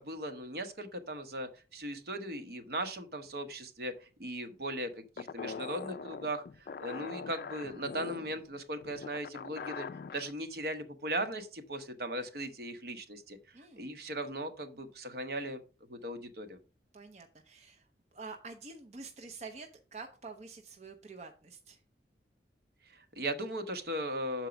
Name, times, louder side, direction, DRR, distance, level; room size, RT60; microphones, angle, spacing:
voice 1, 0.0-9.9 10.1-13.4 13.8-15.6 15.9-16.6 22.9-24.5, right 1 dB, 60° right, 7 dB, 1.0 m, -38 dB
sound 1, 5.2-10.3, left 5 dB, 55° left, 0.3 m, -43 dB
voice 2, 13.5-13.9 16.9-21.8, right 4 dB, 40° right, 4 dB, 0.7 m, -48 dB
6.9 x 4.5 x 5.1 m, 0.34 s
head